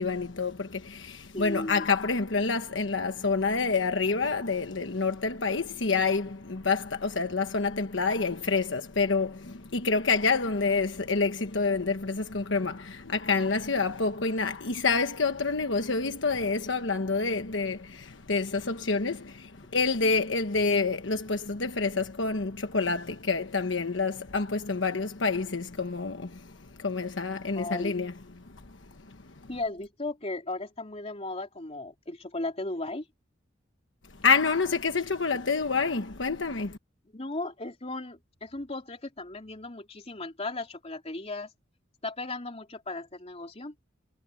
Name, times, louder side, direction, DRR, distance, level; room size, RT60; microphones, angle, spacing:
voice 1, 0.0-28.1 28.4-29.5 34.1-36.8, left 4 dB, 70° left, 1.2 m, -28 dB
voice 2, 1.3-1.9 27.6-28.0 29.5-33.1 37.1-41.5 42.0-43.7, left 2 dB, 35° left, 3.3 m, -36 dB
head